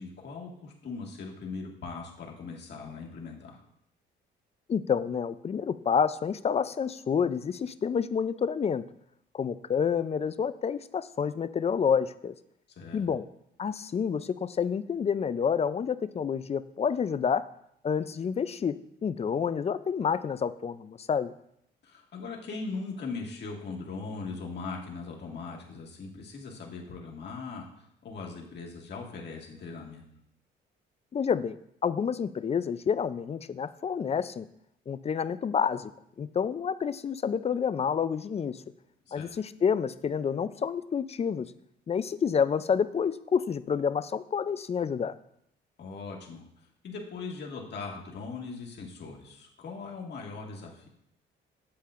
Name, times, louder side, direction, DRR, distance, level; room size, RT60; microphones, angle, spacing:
voice 1, 0.0-3.6 12.8-13.1 21.8-27.7 28.0-30.0 39.1-39.3 45.8-46.4 46.8-50.9, left 4 dB, 60° left, -1 dB, 1.8 m, -40 dB
voice 2, 4.7-8.8 9.3-12.3 12.9-13.2 13.6-17.4 17.8-21.3 31.1-31.6 31.8-34.5 34.9-35.9 36.2-38.6 39.1-41.5 41.9-45.2, left 7 dB, 30° left, 14 dB, 0.4 m, -28 dB
8.5 x 7.4 x 2.5 m, 0.75 s
cardioid pair, 90°, 20 cm